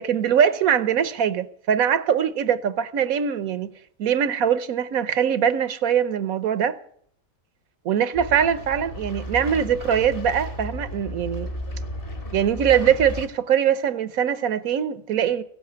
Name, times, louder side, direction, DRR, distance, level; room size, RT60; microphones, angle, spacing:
voice 1, 0.0-3.7 4.0-6.8 7.9-11.5 12.3-15.4, right 8 dB, 85° right, 1.3 m, -22 dB
sound 1, 8.1-13.3, left 1 dB, 40° left, 1.7 m, -34 dB
16.5 x 7.7 x 9.4 m
omnidirectional pair, 1.4 m